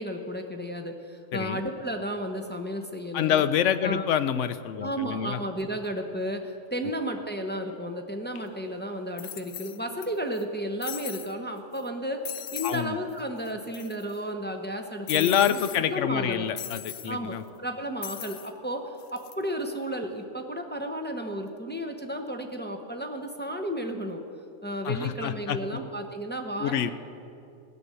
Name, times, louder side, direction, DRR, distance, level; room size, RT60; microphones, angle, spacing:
voice 1, 0.0-3.4 3.8-4.1 4.8-12.2 12.5-15.6 15.8-16.5 17.1-24.2 24.6-26.9, equal, 10° left, 3 dB, 0.7 m, -33 dB
voice 2, 3.1-5.4 12.6-13.0 15.1-17.4 24.8-25.8 26.6-26.9, left 9 dB, 65° left, 13 dB, 0.8 m, -26 dB
sound 1, 8.4-8.5 9.2-10.1 10.3-10.4 10.8-11.3 11.8-11.9 12.2-12.8 13.1-13.2 13.4-14.2 15.1-15.8 16.6-17.1 18.0-18.5 19.0-19.3, left 11 dB, 85° left, 1.2 m, -38 dB
16.0 x 7.0 x 9.6 m, 2.5 s
omnidirectional pair, 1.5 m